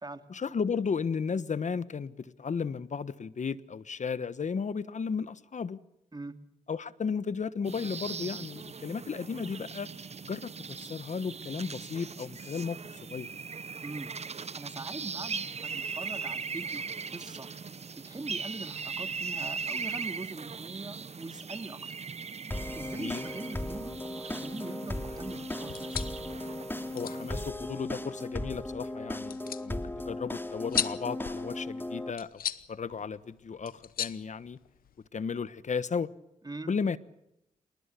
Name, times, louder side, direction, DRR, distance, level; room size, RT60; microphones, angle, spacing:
voice 1, 0.3-5.8 6.7-9.9 10.2-13.3 22.9-23.2 26.9-32.4 32.7-34.6 35.1-36.1 36.7-37.0, left 5 dB, 55° left, 1.2 m, -34 dB
sound 1, 7.6-27.5, right 5 dB, 50° right, 1.0 m, -39 dB
voice 2, 13.8-14.1 14.5-16.8 17.1-17.5 18.0-22.0 22.7-25.9 36.4-36.7, right 2 dB, 30° right, 2.5 m, -42 dB
sound 2, 22.5-32.1, left 1 dB, 15° left, 2.7 m, -37 dB
sound 3, 25.6-35.1, left 10 dB, 85° left, 1.0 m, -39 dB
28.0 x 20.0 x 6.9 m
cardioid pair, 50°, 14 cm